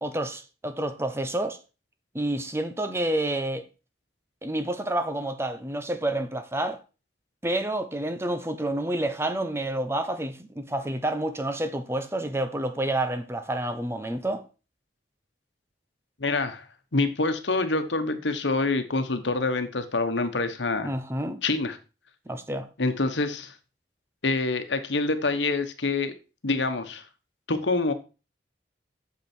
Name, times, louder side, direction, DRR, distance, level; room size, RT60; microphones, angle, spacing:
voice 1, 0.0-1.6 2.1-3.7 4.4-6.8 7.4-14.4 20.8-21.4 22.3-22.7, right 1 dB, 15° right, 0.8 m, -29 dB
voice 2, 16.2-16.6 16.9-20.9 21.4-21.8 22.8-23.5 24.2-26.1 26.4-27.0 27.5-27.9, left 3 dB, 80° left, 1.2 m, -26 dB
8.6 x 6.9 x 4.5 m
head